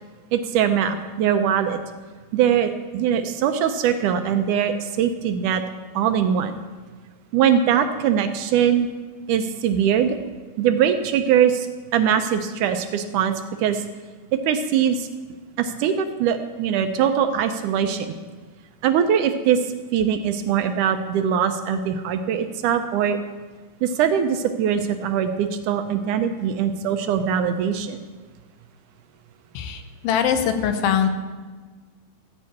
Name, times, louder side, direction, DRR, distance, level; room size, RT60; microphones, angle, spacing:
voice 1, 0.3-1.8 2.3-5.6 6.0-6.6 7.3-8.9 9.3-10.2 10.6-11.7 11.9-13.8 14.5-15.1 15.6-18.1 18.8-19.6 19.9-23.2 23.8-28.0, right 8 dB, 75° right, 8 dB, 2.0 m, -21 dB
voice 2, 29.5-31.1, left 8 dB, 85° left, 7 dB, 2.8 m, -22 dB
15.0 x 5.6 x 8.4 m, 1.4 s
omnidirectional pair, 4.1 m